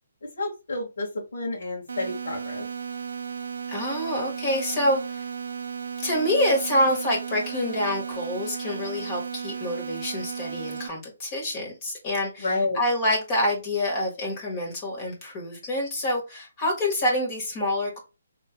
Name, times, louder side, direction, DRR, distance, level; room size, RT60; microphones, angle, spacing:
voice 1, 0.4-2.6 12.4-12.8, left 2 dB, 70° left, -4 dB, 1.7 m, -30 dB
sound 1, 1.9-10.9, right 6 dB, 85° right, 0.5 m, -35 dB
voice 2, 3.7-5.3 6.0-18.0, left 1 dB, 25° left, -1 dB, 1.6 m, -27 dB
4.2 x 3.3 x 2.2 m, 0.28 s
hypercardioid pair, 165°, 0 cm